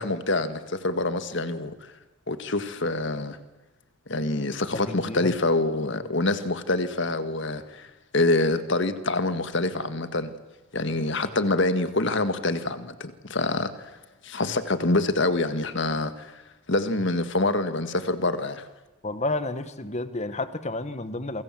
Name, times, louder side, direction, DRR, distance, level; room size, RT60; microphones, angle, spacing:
voice 1, 0.0-1.9 2.3-3.4 4.1-7.9 8.1-10.3 10.7-13.9 14.2-16.4 16.7-18.7, left 2 dB, 60° left, 1.7 m, -26 dB
voice 2, 4.7-5.3 19.0-21.4, left 2 dB, 30° left, 1.5 m, -31 dB
28.0 x 24.5 x 7.6 m
head